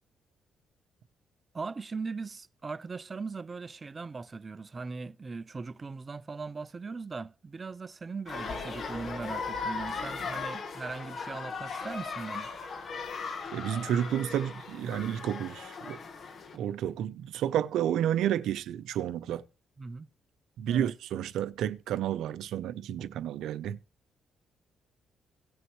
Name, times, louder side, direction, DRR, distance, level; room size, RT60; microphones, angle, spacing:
voice 1, 1.5-12.5 19.8-20.1 20.7-20.9, right 4 dB, 30° right, 0.5 m, -39 dB
sound 1, 8.3-16.6, left 4 dB, 50° left, 1.4 m, -38 dB
voice 2, 13.5-16.0 16.5-19.4 20.6-23.8, right 10 dB, 80° right, 0.6 m, -31 dB
17.5 x 6.2 x 3.1 m
cardioid pair, 90°, 0 cm